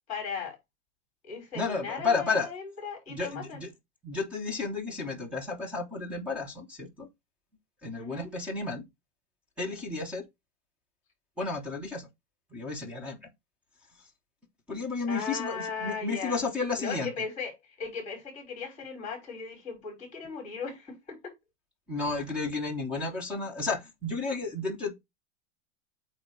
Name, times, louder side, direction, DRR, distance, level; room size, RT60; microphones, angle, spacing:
voice 1, 0.1-0.6 1.2-3.6 8.0-8.3 15.1-16.4 16.8-17.5 17.8-21.3, left 5 dB, 20° left, 4.3 m, -37 dB
voice 2, 1.5-2.5 3.1-3.7 4.0-7.1 7.8-8.8 9.6-10.2 11.4-12.1 12.5-13.2 14.7-17.1 21.9-24.9, left 3 dB, 5° right, 0.8 m, -32 dB
8.7 x 2.9 x 4.6 m
supercardioid pair, 175°, 38 cm